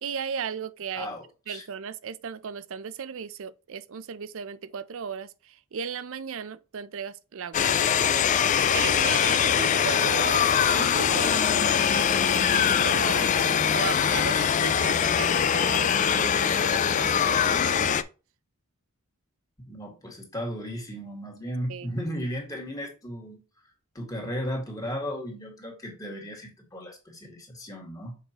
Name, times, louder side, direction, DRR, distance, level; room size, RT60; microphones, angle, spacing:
voice 1, 0.0-1.1 1.5-8.3 8.7-13.3 13.7-17.9 21.7-21.9, right 6 dB, 65° right, 0.5 m, -36 dB
voice 2, 0.9-1.6 14.8-15.0 19.6-23.4 23.9-28.2, equal, 15° left, 1.9 m, -35 dB
sound 1, 7.5-18.0, left 8 dB, 35° left, 0.3 m, -23 dB
6.6 x 4.9 x 2.9 m
head